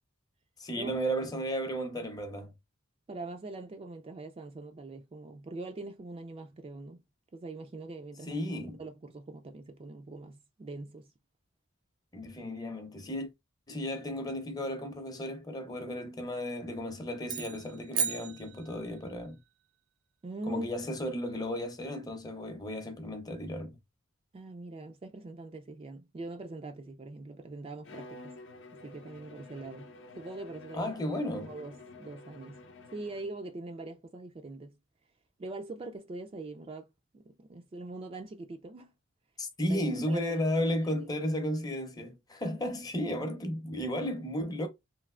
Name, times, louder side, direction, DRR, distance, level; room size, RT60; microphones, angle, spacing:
voice 1, 0.6-2.5 8.3-8.8 12.1-13.3 13.7-19.4 20.5-23.8 30.7-31.5 39.4-44.7, equal, 20° left, 0.6 m, -34 dB
voice 2, 3.1-7.0 7.3-11.1 20.2-20.7 24.3-28.3 28.8-29.9 30.2-30.9 31.2-32.6 32.9-34.8 35.4-36.9 37.1-38.9 39.7-40.4, right 2 dB, 30° right, 0.3 m, -43 dB
sound 1, 17.2-19.2, right 7 dB, 85° right, 0.5 m, -35 dB
Bowed string instrument, 27.8-33.5, left 2 dB, 60° left, 0.6 m, -50 dB
3.2 x 2.6 x 2.4 m
head